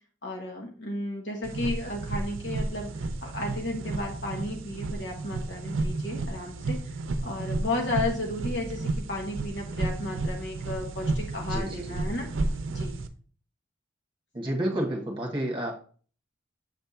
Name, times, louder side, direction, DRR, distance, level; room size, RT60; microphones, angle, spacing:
voice 1, 0.2-6.8 7.2-12.3 12.7-13.0, left 2 dB, 55° left, 0 dB, 1.3 m, -33 dB
sound 1, 1.4-13.1, right 2 dB, 80° right, 0.6 m, -32 dB
voice 2, 11.5-12.0 14.3-15.7, right 1 dB, 25° right, 0 dB, 1.5 m, -30 dB
7.4 x 3.5 x 4.1 m, 0.42 s
head